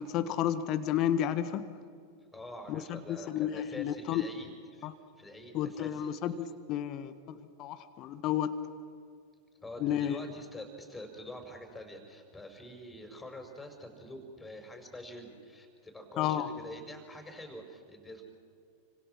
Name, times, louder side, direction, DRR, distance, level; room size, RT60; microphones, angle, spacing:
voice 1, 0.0-1.7 2.7-4.3 4.8-4.9 5.5-8.5 9.8-10.2 16.2-16.5, left 10 dB, 35° left, 11 dB, 1.5 m, -32 dB
voice 2, 2.3-4.9 5.2-6.1 9.6-18.2, left 1 dB, 10° left, 4 dB, 5.6 m, -46 dB
30.0 x 26.5 x 6.1 m, 2.3 s
figure-of-eight pair, 90°, 0 cm